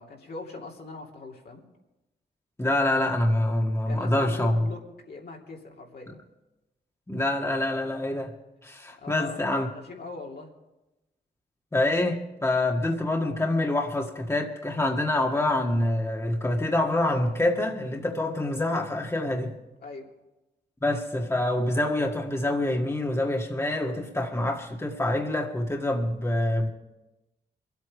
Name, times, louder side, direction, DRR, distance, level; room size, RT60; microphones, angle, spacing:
voice 1, 0.0-1.6 3.9-4.8 5.1-6.2 9.0-10.5 19.8-20.1, left 3 dB, 65° left, -1 dB, 2.8 m, -41 dB
voice 2, 2.6-4.7 7.1-8.3 8.6-9.7 11.7-19.6 20.8-26.7, left 1 dB, 15° left, 1 dB, 1.7 m, -26 dB
23.0 x 8.3 x 5.0 m, 1.0 s
cardioid pair, 60°, 18 cm